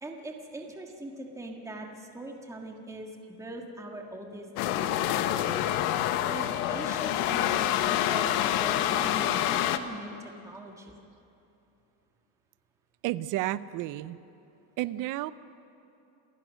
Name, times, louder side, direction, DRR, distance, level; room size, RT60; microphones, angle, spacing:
voice 1, 0.0-5.5 6.3-10.9, right 1 dB, 5° right, 1 dB, 1.6 m, -41 dB
sound 1, 4.6-9.8, left 12 dB, 75° left, 1.2 m, -27 dB
voice 2, 13.0-14.2 14.8-15.3, right 15 dB, 45° right, 16 dB, 0.6 m, -31 dB
28.0 x 15.0 x 6.3 m, 2.9 s
cardioid pair, 150°, 47 cm